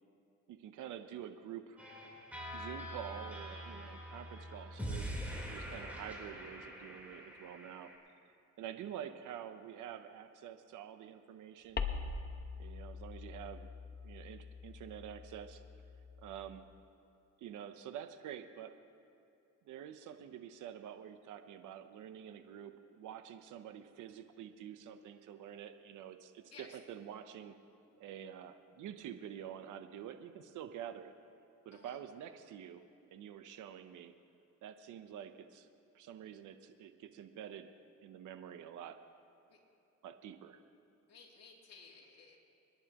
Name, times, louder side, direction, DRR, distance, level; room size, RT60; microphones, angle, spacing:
voice 1, 0.5-1.8 2.5-7.9 8.6-11.8 12.6-13.8 14.0-15.6 16.2-16.7 17.4-18.7 19.7-27.5 28.0-31.1 31.6-34.1 34.6-35.7 35.9-37.7 38.0-39.0 40.0-40.6, right 9 dB, 80° right, 9 dB, 0.8 m, -48 dB
sound 1, 1.8-8.0, equal, 5° right, 3.7 m, -44 dB
sound 2, 11.8-16.6, left 5 dB, 35° left, 0.9 m, -43 dB
voice 2, 41.1-42.4, left 5 dB, 60° left, -2 dB, 2.8 m, -57 dB
26.5 x 10.5 x 3.0 m, 2.7 s
cardioid pair, 90°, 30 cm